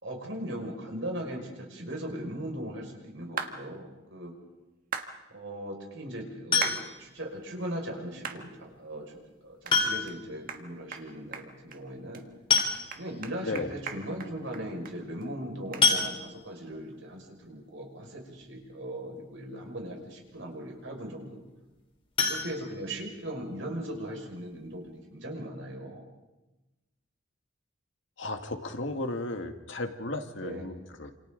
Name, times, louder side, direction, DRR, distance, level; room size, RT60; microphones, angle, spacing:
voice 1, 0.0-4.3 5.3-12.3 12.9-21.4 22.3-26.0 30.4-30.7, right 1 dB, 70° right, 1 dB, 5.6 m, -39 dB
sound 1, 3.4-3.6 4.9-5.1 6.6-6.8 7.3-7.4 8.2-8.4 8.9-9.0 9.7-9.8 10.1-10.2 10.5-10.6 10.9-11.1 11.3-11.8 12.1-12.2 12.6-15.0 15.2-15.3 15.7-15.9, right 6 dB, 45° right, 1.6 m, -37 dB
sound 2, 6.5-7.1 8.6-8.7 9.7-10.3 10.6-10.7 11.0-11.1 12.1-12.2 12.5-13.2 13.8-13.9 14.2-14.4 15.8-16.6 22.1-23.3 23.7-23.8 24.2-24.3 24.7-24.8, left 5 dB, 30° left, 3.6 m, -27 dB
voice 2, 28.2-31.1, left 2 dB, 70° left, 5 dB, 1.8 m, -34 dB
29.0 x 27.5 x 3.9 m, 1.1 s
head